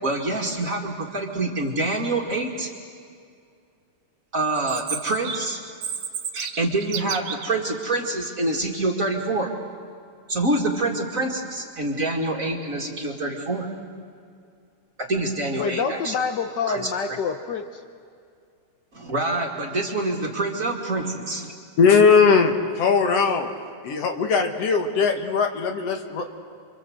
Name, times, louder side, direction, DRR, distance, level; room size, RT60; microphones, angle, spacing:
voice 1, 0.0-2.7 4.3-5.6 6.3-9.5 10.3-13.7 15.1-16.1 16.7-17.2 18.9-21.5, right 2 dB, 30° right, 1 dB, 2.2 m, -26 dB
Chirp tweet, 4.5-7.5, right 7 dB, 65° right, 2.3 m, -32 dB
voice 2, 15.6-17.8, left 6 dB, 85° left, 7 dB, 0.9 m, -27 dB
voice 3, 21.8-23.5 23.8-26.2, left 5 dB, 60° left, 5 dB, 2.5 m, -19 dB
29.5 x 24.5 x 7.9 m, 2.3 s
omnidirectional pair, 3.3 m